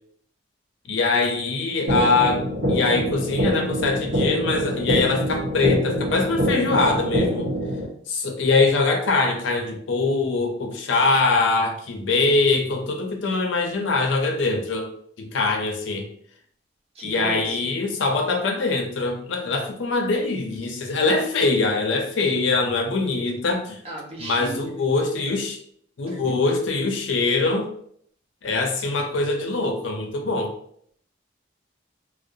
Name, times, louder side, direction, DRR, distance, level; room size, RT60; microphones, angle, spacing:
voice 1, 0.9-7.5 8.1-14.9 15.2-16.1 17.0-23.8 24.2-25.6 26.0-27.7 28.4-30.5, left 3 dB, 90° left, 3 dB, 0.5 m, -23 dB
sound 1, 1.9-7.9, equal, 80° right, 0.6 m, -25 dB
voice 2, 16.9-17.6 23.8-24.7 26.1-26.4, right 2 dB, 30° right, -1 dB, 0.5 m, -36 dB
2.4 x 2.0 x 2.6 m, 0.65 s
head